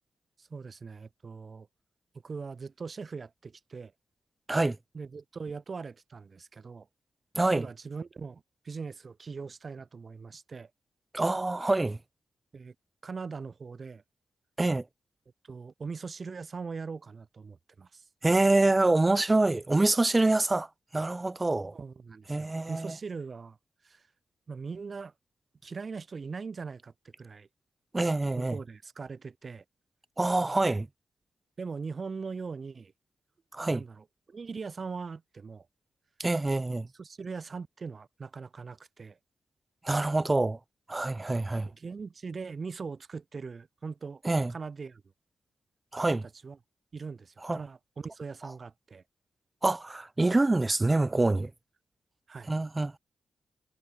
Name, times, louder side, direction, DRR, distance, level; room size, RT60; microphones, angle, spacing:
voice 1, 0.4-1.7 2.2-3.9 4.9-6.9 7.5-10.7 12.5-12.7 13.0-14.0 15.4-18.0 21.7-23.6 23.8-24.0 24.5-25.1 25.6-27.5 28.3-29.6 31.6-32.9 33.6-35.7 36.9-39.2 41.6-44.2 44.5-45.0 46.2-46.6 46.9-49.0 52.3-52.5, right 5 dB, 50° right, 3.4 m, -41 dB
voice 2, 7.4-7.7 11.1-12.0 14.6-14.8 18.2-20.7 20.9-21.7 22.3-23.0 27.9-28.6 30.2-30.9 33.5-33.8 36.2-36.9 39.8-40.6 40.9-41.7 44.2-44.5 45.9-46.2 47.4-47.6 49.6-51.5 52.5-53.0, right 2 dB, 25° right, 0.4 m, -26 dB
supercardioid pair, 55°, 0 cm